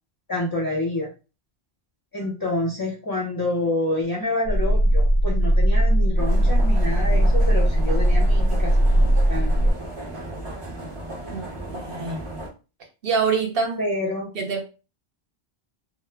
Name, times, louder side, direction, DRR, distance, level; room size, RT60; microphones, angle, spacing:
voice 1, 0.3-1.1 2.1-9.7 13.8-14.3, left 2 dB, 30° left, -2 dB, 0.4 m, -28 dB
sound 1, 4.5-9.7, right 1 dB, 90° right, 1.0 m, -19 dB
sound 2, 6.2-12.5, right 1 dB, 35° right, 0.6 m, -35 dB
voice 2, 11.3-12.2 13.0-13.8 14.3-14.6, right 5 dB, 65° right, 3 dB, 0.9 m, -25 dB
2.1 x 2.1 x 3.2 m, 0.32 s
omnidirectional pair, 1.1 m